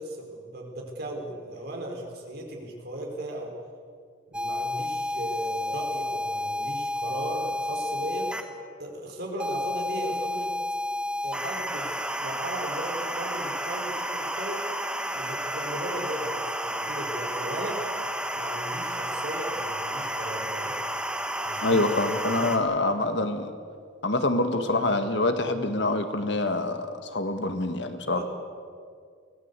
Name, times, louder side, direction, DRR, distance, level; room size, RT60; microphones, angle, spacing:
voice 1, 0.0-3.5 4.3-8.3 8.8-10.5 11.2-11.9 12.2-14.6 15.1-17.9 18.3-20.7 21.4-21.8 22.2-23.0 28.1-28.2, right 1 dB, 50° right, 1 dB, 4.6 m, -37 dB
sound 1, 4.3-8.4 9.4-22.6, equal, 5° right, 1.3 m, -31 dB
voice 2, 21.6-23.5 24.0-28.2, left 2 dB, 60° left, 7 dB, 1.8 m, -26 dB
24.0 x 18.0 x 8.3 m, 2.1 s
head